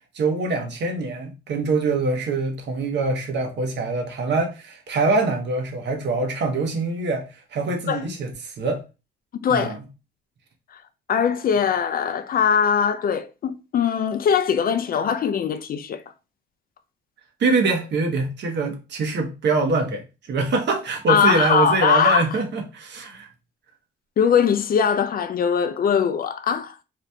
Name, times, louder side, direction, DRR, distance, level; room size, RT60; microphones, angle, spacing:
voice 1, 0.1-8.8 9.5-9.8 17.4-23.3, right 3 dB, 60° right, 1.0 m, -24 dB
voice 2, 9.4-9.8 10.7-10.8 11.1-16.0 21.1-22.4 24.2-26.7, left 7 dB, 50° left, 0.4 m, -21 dB
2.8 x 2.4 x 3.3 m
cardioid pair, 90°, 20 cm